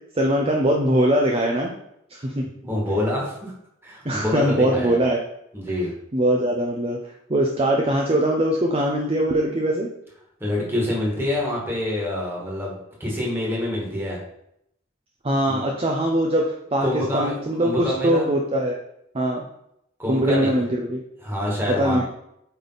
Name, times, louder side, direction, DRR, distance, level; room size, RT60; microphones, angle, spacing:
voice 1, 0.1-1.7 2.2-2.5 4.0-5.2 6.1-9.9 15.2-16.9 17.1-18.7 19.1-19.4 20.1-21.0 21.7-22.0, right 1 dB, 30° right, 0 dB, 0.6 m, -21 dB
voice 2, 2.6-3.5 3.8-5.0 5.5-5.9 10.4-14.2 15.5-15.7 16.8-17.3 17.6-18.3 20.0-20.6 21.2-22.0, left 1 dB, 10° right, -4 dB, 2.0 m, -26 dB
8.5 x 3.5 x 4.0 m, 0.77 s
head